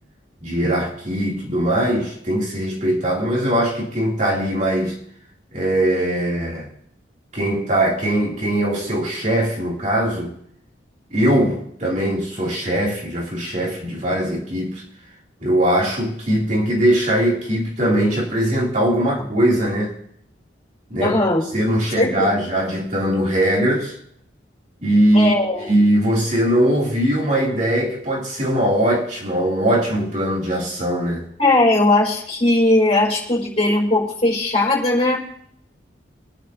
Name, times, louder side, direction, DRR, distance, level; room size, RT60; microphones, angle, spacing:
voice 1, 0.4-5.0 5.5-6.7 7.3-10.3 11.1-14.8 15.4-19.9 20.9-21.2 21.5-24.0 24.8-25.3 25.7-31.3, right 1 dB, 40° right, 3.1 m, -20 dB
voice 2, 21.0-21.4 22.0-22.3 25.1-25.7 31.4-35.2, left 2 dB, 35° left, 5.2 m, -18 dB
25.5 x 10.5 x 2.9 m
head